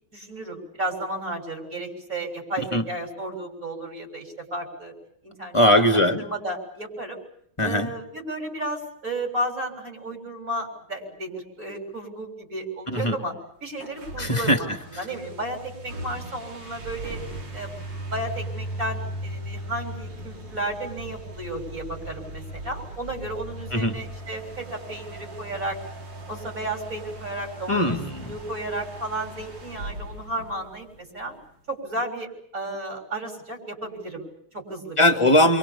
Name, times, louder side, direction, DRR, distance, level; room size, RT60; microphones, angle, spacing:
voice 1, 0.1-4.9 5.2-7.2 7.6-13.3 13.6-17.2 17.5-25.8 26.3-27.8 28.2-31.4 31.7-32.3 32.5-35.0, right 1 dB, 40° right, 3 dB, 7.5 m, -33 dB
voice 2, 5.5-6.3 7.6-7.9 12.9-13.2 14.2-14.6 23.7-23.9 27.7-28.4 35.0-35.6, left 1 dB, 15° left, 6 dB, 2.1 m, -20 dB
sound 1, 13.7-31.2, right 1 dB, 60° right, 3.7 m, -38 dB
29.0 x 25.0 x 7.1 m, 0.67 s
omnidirectional pair, 2.3 m